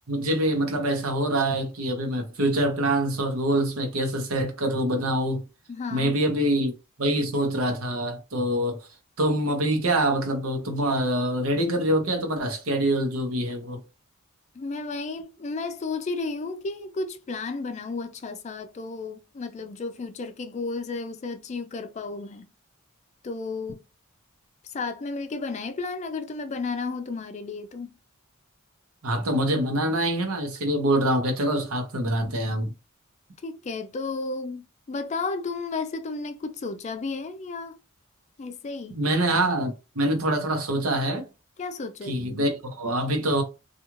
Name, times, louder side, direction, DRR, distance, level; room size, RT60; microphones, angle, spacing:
voice 1, 0.1-5.4 5.9-6.7 7.0-8.9 9.2-13.8 29.0-32.7 38.9-41.2 42.1-43.4, right 1 dB, 85° right, 0.9 m, -25 dB
voice 2, 5.7-6.1 14.6-22.5 23.2-23.8 24.7-27.9 33.4-37.8 38.4-39.0 41.6-42.5, left 3 dB, 35° left, 0.3 m, -33 dB
2.4 x 2.3 x 3.0 m
head